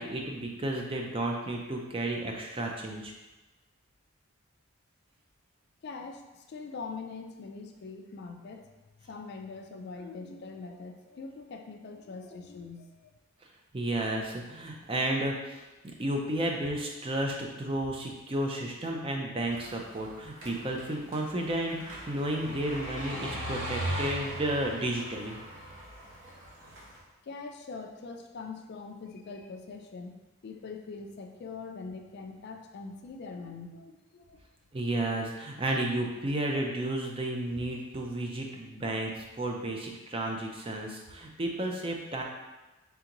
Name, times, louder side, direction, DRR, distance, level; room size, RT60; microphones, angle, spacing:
voice 1, 0.0-3.1 13.7-25.4 34.7-42.2, right 1 dB, 25° right, 1 dB, 0.4 m, -32 dB
voice 2, 5.8-8.7 9.1-13.0 27.2-30.1 30.4-34.4, left 4 dB, 50° left, 5 dB, 0.3 m, -43 dB
sound 1, 19.5-27.0, right 1 dB, 60° right, 1.0 m, -39 dB
3.7 x 3.4 x 2.9 m, 1.1 s
head